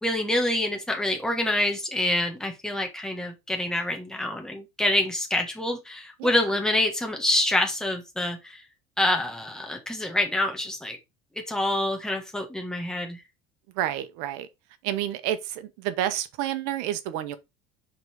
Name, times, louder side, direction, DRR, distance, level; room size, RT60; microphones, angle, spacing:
voice 1, 0.0-8.6 9.0-11.0 11.5-13.2, left 1 dB, 5° left, 1.5 m, -26 dB
voice 2, 13.7-14.5 14.8-17.4, right 12 dB, 75° right, 1.0 m, -29 dB
4.9 x 4.0 x 4.8 m
cardioid pair, 150°, 17 cm